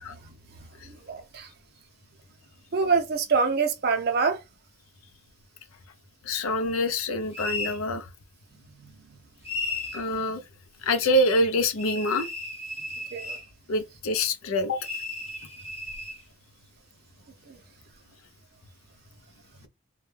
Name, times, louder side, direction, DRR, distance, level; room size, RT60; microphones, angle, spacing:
voice 1, 0.9-1.5 2.7-4.4 8.8-8.9 13.1-13.4 17.5-17.6, right 5 dB, 50° right, 0.5 m, -26 dB
voice 2, 6.2-8.1 9.9-10.4 10.8-12.3 13.7-14.9, left 1 dB, 90° left, 0.5 m, -25 dB
sound 1, 7.3-7.8 9.4-10.0 11.8-13.5 14.8-16.2, left 2 dB, 30° left, 0.7 m, -34 dB
2.2 x 2.1 x 3.1 m
head